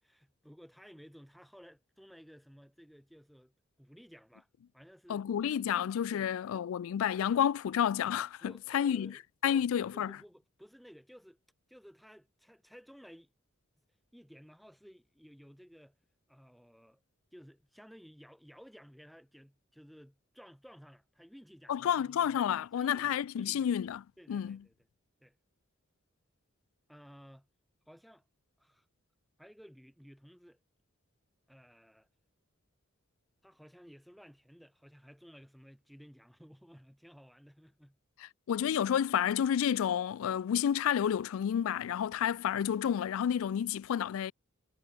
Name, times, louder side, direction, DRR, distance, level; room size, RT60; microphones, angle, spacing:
voice 1, 0.0-3.5 3.8-4.5 4.7-5.3 6.1-6.3 8.4-9.2 9.5-11.4 11.7-13.3 14.1-16.0 16.3-17.0 17.3-23.7 24.2-24.7 25.2-25.4 26.9-27.5 27.9-28.2 28.6-28.9 29.4-30.6 31.5-32.1 33.4-38.0, equal, ahead, 5.8 m, -56 dB
voice 2, 5.1-9.1 9.4-10.2 21.7-24.6 38.5-44.3, left 9 dB, 75° left, 0.3 m, -30 dB
head